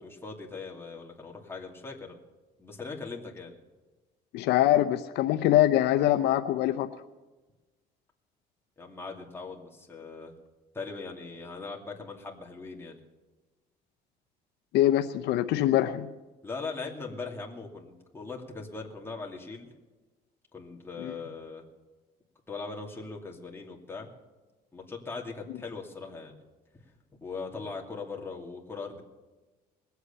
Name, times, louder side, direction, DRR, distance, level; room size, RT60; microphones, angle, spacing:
voice 1, 0.0-2.2 2.6-3.5 8.8-10.3 10.7-13.0 16.4-19.7 20.5-21.6 22.5-24.1 24.7-26.4 26.7-26.8 27.2-29.0, left 4 dB, 15° left, -1 dB, 2.6 m, -40 dB
voice 2, 4.3-6.9 14.7-16.1 21.0-21.1, left 13 dB, 85° left, 9 dB, 0.7 m, -23 dB
20.5 x 8.1 x 6.9 m, 1.2 s
cardioid pair, 110°, 17 cm